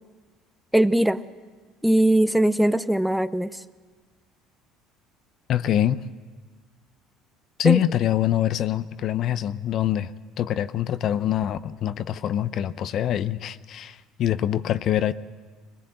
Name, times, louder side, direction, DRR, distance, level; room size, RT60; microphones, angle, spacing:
voice 1, 0.7-1.2 1.8-3.6 7.6-7.8, right 1 dB, 5° right, 14 dB, 0.6 m, -20 dB
voice 2, 5.5-6.0 7.6-10.1 10.4-15.1, left 11 dB, 55° left, 14 dB, 0.7 m, -24 dB
22.0 x 20.0 x 7.7 m, 1.4 s
supercardioid pair, 105°, 0 cm